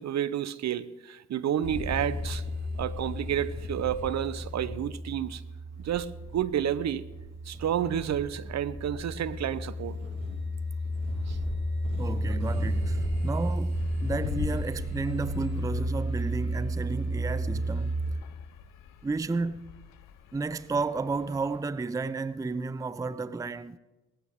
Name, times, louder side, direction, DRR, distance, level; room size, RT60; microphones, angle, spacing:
voice 1, 0.0-2.4 2.8-5.4 5.8-6.1 6.3-7.0 7.5-10.0 11.3-11.4 12.3-12.4, right 10 dB, 55° right, 0.8 m, -30 dB
sound 1, 1.6-18.1, equal, 70° right, 6.5 m, -32 dB
voice 2, 12.0-18.0 19.0-19.7 20.3-23.8, right 3 dB, 10° right, 0.5 m, -32 dB
sound 2, 13.7-21.8, left 10 dB, 70° left, 0.7 m, -42 dB
19.0 x 14.5 x 3.7 m
hypercardioid pair, 40°, 33 cm